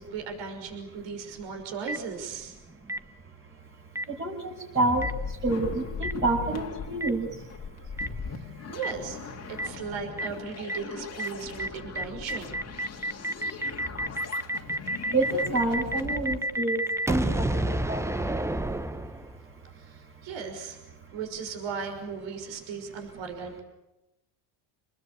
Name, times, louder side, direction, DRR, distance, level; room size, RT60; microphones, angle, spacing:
voice 1, 0.0-2.6 8.7-9.2 9.5-12.6 19.8-20.8 21.1-23.6, right 6 dB, 65° right, 5 dB, 6.2 m, -37 dB
Boom, 1.9-2.0 2.9-3.0 3.9-4.0 5.0-5.1 6.0-6.1 7.0-7.1 8.0-8.1 8.8-8.9 9.6-9.7 10.2-10.3 10.7-10.8 11.2-11.3 11.6-11.7 11.9-19.5, right 1 dB, 5° right, 1.0 m, -29 dB
voice 2, 4.2-5.1 5.4-7.3 15.1-16.8 17.1-17.4 17.9-18.0, right 2 dB, 25° right, -5 dB, 6.3 m, -27 dB
sound 1, 4.8-16.4, left 5 dB, 30° left, 2.4 m, -39 dB
30.0 x 20.5 x 8.6 m, 0.94 s
cardioid pair, 115°, 47 cm